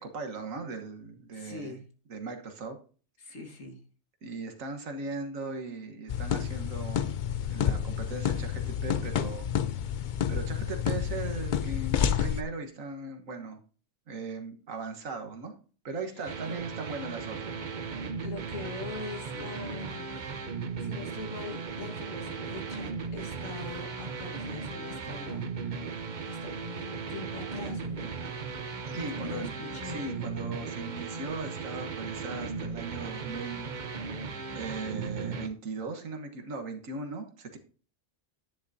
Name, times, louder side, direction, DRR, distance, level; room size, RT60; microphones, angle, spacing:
voice 1, 0.0-1.7 2.1-2.8 4.2-7.1 7.5-9.5 10.3-13.6 14.1-15.5 15.8-17.5 28.8-33.7 34.0-37.6, right 3 dB, 85° right, 5 dB, 1.7 m, -38 dB
voice 2, 1.3-1.9 3.2-3.8 16.2-16.6 18.2-25.9 26.2-28.1 28.7-30.1, left 3 dB, 75° left, 3 dB, 2.0 m, -42 dB
sound 1, 6.1-12.4, left 9 dB, 60° left, 0.5 m, -29 dB
sound 2, 16.3-35.5, right 5 dB, 40° right, 0.8 m, -37 dB
10.5 x 10.0 x 2.7 m, 0.39 s
omnidirectional pair, 1.3 m